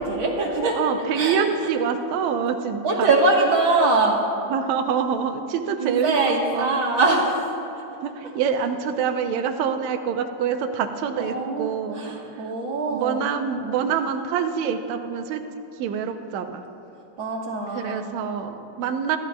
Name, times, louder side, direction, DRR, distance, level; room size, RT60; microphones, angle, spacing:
voice 1, 0.0-1.5 2.8-4.3 5.8-7.9 11.2-13.3 17.2-18.3, right 2 dB, 50° right, -2 dB, 1.8 m, -23 dB
voice 2, 0.8-3.1 4.5-6.7 7.8-12.0 12.9-15.4 15.8-16.7 17.7-19.2, right 7 dB, 75° right, 6 dB, 1.9 m, -26 dB
25.5 x 13.5 x 2.3 m, 2.8 s
omnidirectional pair, 3.6 m